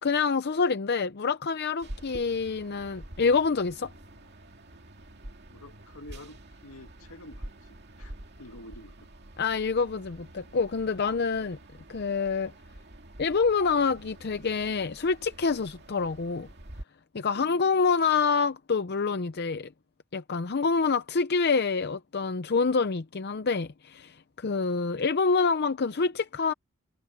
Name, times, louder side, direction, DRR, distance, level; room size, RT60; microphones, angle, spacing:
voice 1, 0.0-3.9 9.4-11.6 11.9-12.5 13.2-16.5 17.1-19.7 20.1-26.5, left 4 dB, 50° left, 0.6 m, -27 dB
sound 1, 1.8-16.8, right 1 dB, 50° right, 2.4 m, -47 dB
voice 2, 5.5-9.2 17.3-17.9, left 1 dB, 80° left, 2.4 m, -48 dB
head